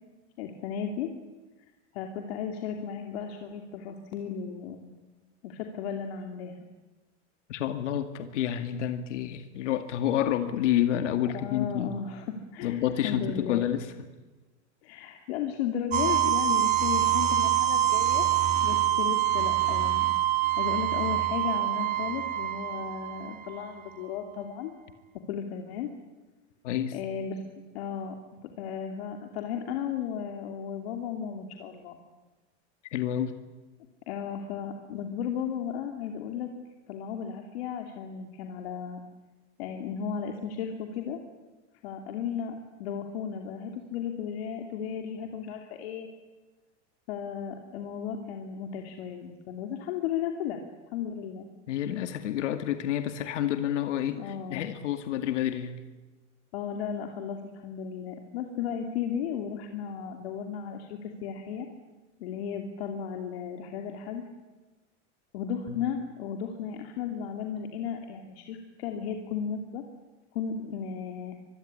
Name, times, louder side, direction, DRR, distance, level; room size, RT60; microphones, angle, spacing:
voice 1, 0.4-1.1 1.9-4.8 5.4-6.6 11.2-12.3 12.5-13.6 14.8-18.2 18.6-24.7 25.3-25.9 26.9-27.4 27.7-28.2 28.4-32.0 34.1-36.5 36.9-39.0 39.6-41.2 41.8-46.1 47.1-50.6 50.9-51.5 54.1-54.6 56.5-61.7 62.2-64.2 65.3-69.8 70.3-71.4, left 7 dB, 60° left, 4 dB, 2.8 m, -35 dB
voice 2, 7.5-12.0 12.6-13.9 26.6-27.0 32.9-33.3 51.7-55.8 65.7-65.8, left 11 dB, 85° left, 8 dB, 2.2 m, -29 dB
sound 1, 15.9-23.7, right 12 dB, 20° right, 1.5 m, -25 dB
25.0 x 22.0 x 9.9 m, 1.2 s
supercardioid pair, 175°, 35 cm